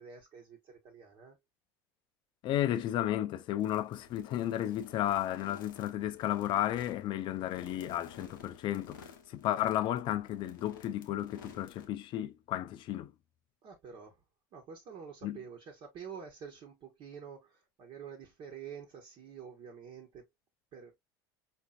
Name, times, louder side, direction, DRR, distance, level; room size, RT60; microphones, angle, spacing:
voice 1, 0.0-1.4 13.6-14.2 14.5-20.3 20.7-20.9, right 7 dB, 50° right, 1.1 m, -48 dB
voice 2, 2.4-13.1 15.2-15.4, left 12 dB, 50° left, 0.5 m, -33 dB
sound 1, 3.6-11.9, left 6 dB, 90° left, 0.8 m, -54 dB
4.2 x 2.6 x 2.3 m
hypercardioid pair, 85°, 11 cm